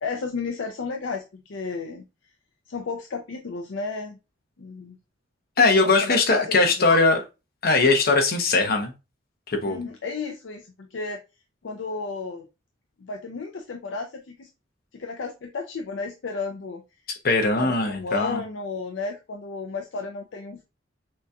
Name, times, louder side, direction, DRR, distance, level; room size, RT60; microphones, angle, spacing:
voice 1, 0.0-2.0 2.7-4.2 4.6-5.0 5.8-7.0 9.7-11.2 11.6-12.5 13.0-14.5 14.9-16.8 17.5-20.6, left 4 dB, 70° left, 0.5 m, -33 dB
voice 2, 5.6-7.2 7.6-8.9 9.5-9.8 17.2-18.4, left 3 dB, 55° left, 1.0 m, -20 dB
6.0 x 2.9 x 2.3 m
head